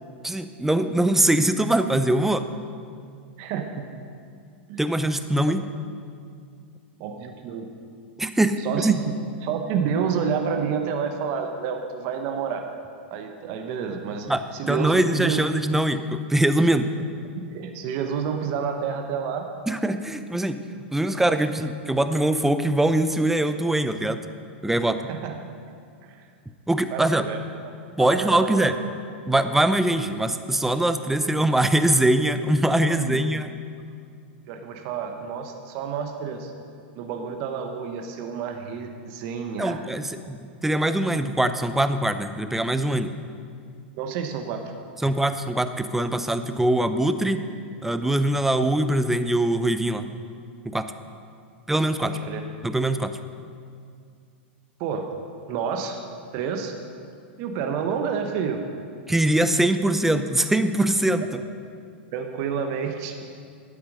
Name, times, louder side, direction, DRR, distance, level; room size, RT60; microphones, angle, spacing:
voice 1, 0.2-2.5 4.8-5.7 8.2-9.0 14.3-16.9 19.7-20.6 20.9-24.2 24.6-25.0 26.7-27.2 28.0-28.8 29.3-33.5 39.6-43.1 45.0-47.4 47.8-50.1 50.7-50.9 51.7-52.2 52.6-53.2 59.1-61.4, right 1 dB, 5° right, 10 dB, 0.6 m, -22 dB
voice 2, 3.4-3.9 4.7-4.8 7.0-7.7 8.6-9.1 9.4-12.6 13.1-14.3 14.5-15.4 17.4-19.5 25.1-25.4 26.0-26.2 26.9-27.4 28.0-28.7 32.9-33.2 34.5-36.5 36.9-39.8 44.0-44.7 52.0-52.4 54.8-55.1 55.5-56.0 56.3-56.8 57.4-58.6 61.2-61.3 62.1-63.3, right 6 dB, 50° right, 5 dB, 1.1 m, -29 dB
12.0 x 8.7 x 5.4 m, 2.3 s
hypercardioid pair, 110°, 6 cm